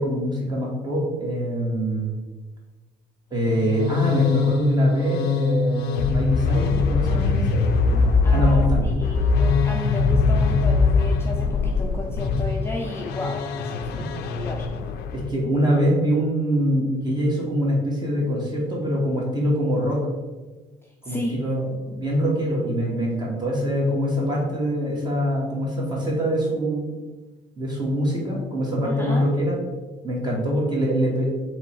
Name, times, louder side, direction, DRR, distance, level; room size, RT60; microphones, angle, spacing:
voice 1, 0.0-2.2 3.3-8.9 13.9-14.1 15.1-20.0 21.0-26.9 27.6-29.6 30.0-31.3, equal, 25° right, -3 dB, 1.4 m, -24 dB
sound 1, 3.4-15.3, left 4 dB, 80° left, 0.4 m, -22 dB
voice 2, 8.2-14.1 14.4-14.7 21.0-21.4 28.8-29.3, left 1 dB, 15° left, -1 dB, 0.5 m, -33 dB
3.6 x 3.1 x 4.4 m, 1.3 s
cardioid pair, 110°, 17 cm